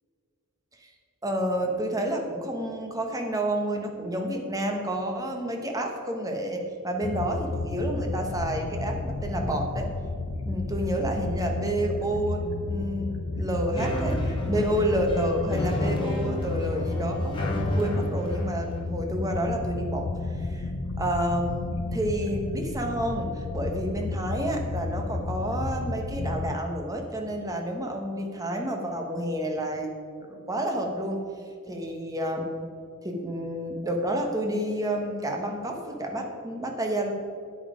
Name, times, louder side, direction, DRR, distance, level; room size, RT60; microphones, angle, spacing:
voice 1, 1.2-9.9 10.5-14.2 14.5-17.4 17.7-20.1 20.4-20.7 21.0-29.9 30.3-31.2 31.7-32.7 33.0-37.1, right 1 dB, 15° right, 2 dB, 1.3 m, -29 dB
sound 1, 7.0-26.6, left 3 dB, 65° left, 0.6 m, -32 dB
sound 2, 13.8-18.8, equal, 25° left, 1.8 m, -31 dB
9.8 x 8.7 x 5.1 m, 2.3 s
head